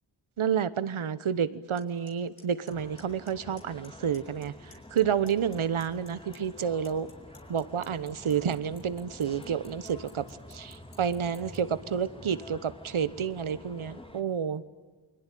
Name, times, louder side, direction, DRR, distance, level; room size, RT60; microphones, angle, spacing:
voice 1, 0.4-7.1 7.5-14.6, right 7 dB, 80° right, 15 dB, 1.2 m, -30 dB
Clock, 1.8-1.9 2.1-2.4 2.7-3.3 3.6-3.9 4.1-5.0 5.3-11.6, left 5 dB, 85° left, 4.2 m, -53 dB
sound 1, 2.7-14.2, left 1 dB, 10° left, 1.9 m, -49 dB
29.0 x 21.5 x 9.4 m, 1.3 s
wide cardioid pair, 65°, 48 cm